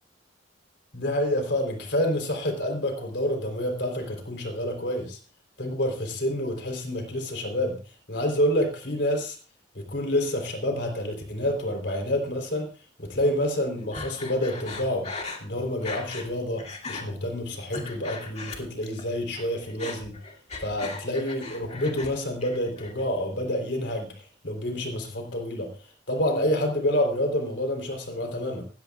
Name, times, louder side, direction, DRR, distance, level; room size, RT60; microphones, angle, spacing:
voice 1, 0.9-5.2 5.6-7.8 8.1-9.4 9.8-12.7 13.0-15.1 15.4-20.2 20.6-25.7 26.1-28.6, left 1 dB, 60° left, 4 dB, 3.6 m, -28 dB
Breathing, 13.9-16.3 16.6-17.0 17.5-19.0 19.3-22.1 22.4-23.0, left 3 dB, 35° left, 2.2 m, -38 dB
19.0 x 14.5 x 2.4 m, 0.35 s
head